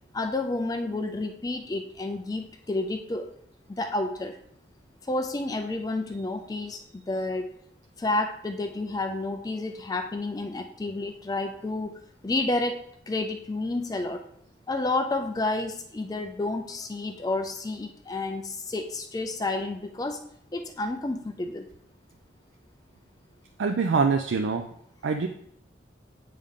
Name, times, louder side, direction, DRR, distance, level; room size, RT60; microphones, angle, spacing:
voice 1, 0.1-3.3 3.7-4.4 5.0-7.5 8.0-14.2 14.7-20.2 20.5-21.7, left 2 dB, 20° left, 5 dB, 0.4 m, -30 dB
voice 2, 23.6-24.7 25.0-25.3, right 5 dB, 85° right, 5 dB, 0.4 m, -24 dB
8.6 x 3.7 x 3.6 m, 0.69 s
head